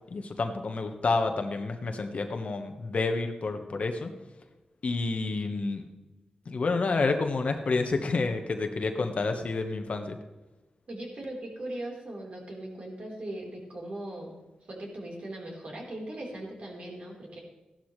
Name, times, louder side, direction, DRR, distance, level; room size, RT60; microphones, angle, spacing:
voice 1, 0.1-4.1 4.8-5.8 6.5-10.1, left 3 dB, 55° left, 6 dB, 1.3 m, -29 dB
voice 2, 10.9-14.4 14.7-17.4, right 1 dB, 55° right, -2 dB, 4.2 m, -39 dB
15.0 x 12.0 x 3.3 m, 1.1 s
cardioid pair, 80°, 3 cm